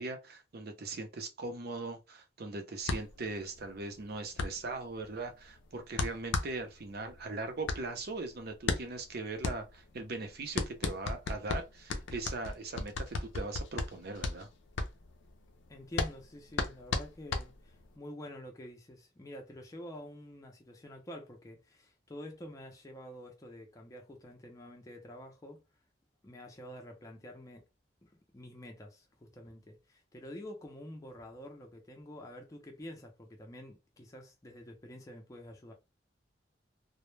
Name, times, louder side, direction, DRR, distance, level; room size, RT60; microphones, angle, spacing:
voice 1, 0.0-14.5, right 3 dB, 55° right, 0.6 m, -40 dB
sound 1, 2.8-18.0, left 3 dB, 90° left, 0.5 m, -36 dB
voice 2, 15.7-25.6 26.2-27.7 28.0-35.7, equal, 20° left, 0.4 m, -48 dB
2.1 x 2.0 x 3.1 m
head